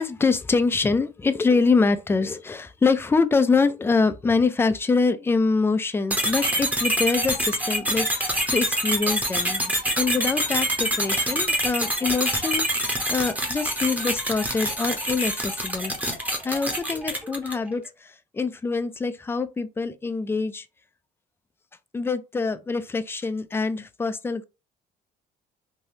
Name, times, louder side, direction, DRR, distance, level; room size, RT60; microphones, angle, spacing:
voice 1, 0.0-15.9 16.4-20.7 21.9-24.4, left 4 dB, 15° left, 0.3 m, -25 dB
sound 1, 6.1-17.7, right 1 dB, 10° right, 0.8 m, -26 dB
3.3 x 2.6 x 2.7 m
cardioid pair, 110°, 17 cm